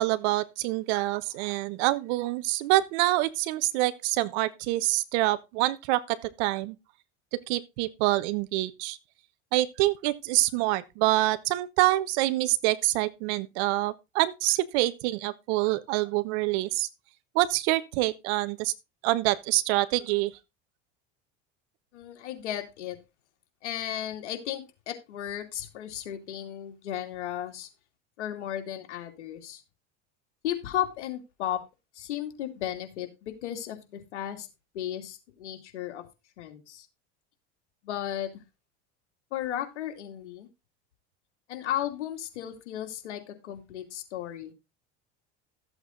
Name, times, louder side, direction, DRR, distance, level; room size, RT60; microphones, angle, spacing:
voice 1, 0.0-6.7 7.3-9.0 9.5-16.9 17.3-18.7 19.0-20.3, right 18 dB, 70° right, 1.3 m, -26 dB
voice 2, 21.9-23.0 23.6-27.7 28.2-29.6 30.4-31.6 31.9-34.5 34.7-36.0 36.4-36.9 37.8-38.4 39.3-40.5 41.5-44.5, left 11 dB, 85° left, 2.7 m, -35 dB
14.0 x 8.0 x 3.9 m
hypercardioid pair, 95°, 34 cm